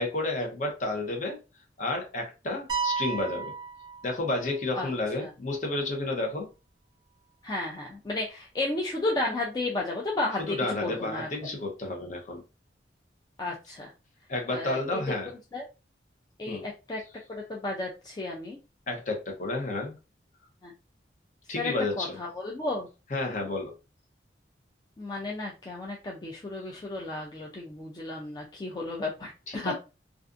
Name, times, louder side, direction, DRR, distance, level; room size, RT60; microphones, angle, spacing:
voice 1, 0.0-1.4 1.8-3.5 4.0-6.5 10.4-12.4 14.3-15.3 16.5-16.6 18.9-19.9 21.5-22.1 23.1-23.7 29.5-29.7, left 2 dB, 45° left, 0.7 m, -31 dB
sound 1, 2.7-4.6, right 5 dB, 25° right, 0.6 m, -33 dB
voice 2, 7.4-11.3 13.4-13.9 14.5-15.0 15.5-15.6 16.4-17.0 17.3-18.6 20.6-20.7 21.6-22.9 25.0-29.7, left 2 dB, 20° left, 0.3 m, -33 dB
2.4 x 2.4 x 2.4 m
head